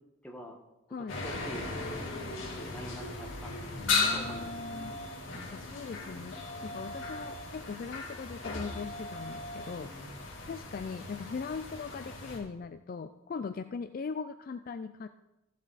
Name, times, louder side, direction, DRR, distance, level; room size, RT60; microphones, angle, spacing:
voice 1, 0.2-0.6 1.0-2.1 2.5-4.8 9.8-10.1, equal, 5° left, 1 dB, 1.3 m, -46 dB
sound 1, 1.1-12.4, left 3 dB, 75° left, 2.8 m, -37 dB
voice 2, 3.8-5.0 5.5-6.4 6.6-9.9 10.5-15.1, left 5 dB, 45° left, 10 dB, 0.3 m, -40 dB
14.5 x 7.4 x 4.1 m, 0.96 s
head